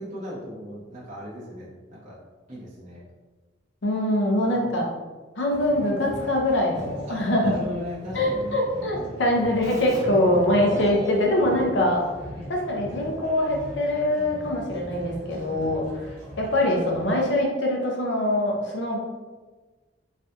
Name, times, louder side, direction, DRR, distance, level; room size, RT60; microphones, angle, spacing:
voice 1, 0.0-2.2 2.5-3.0 4.5-4.7 7.1-8.7 8.9-9.5 10.2-10.4 12.3-12.5, left 1 dB, 40° right, -8 dB, 1.1 m, -38 dB
voice 2, 3.8-4.9 5.4-7.5 8.1-12.0 12.5-15.8 16.4-19.0, left 1 dB, 70° left, 0 dB, 0.6 m, -23 dB
sound 1, 5.5-17.1, equal, 65° right, 0.8 m, -41 dB
Keyboard (musical), 9.6-13.0, right 1 dB, 20° right, 0.4 m, -38 dB
3.2 x 2.4 x 2.8 m, 1.3 s
head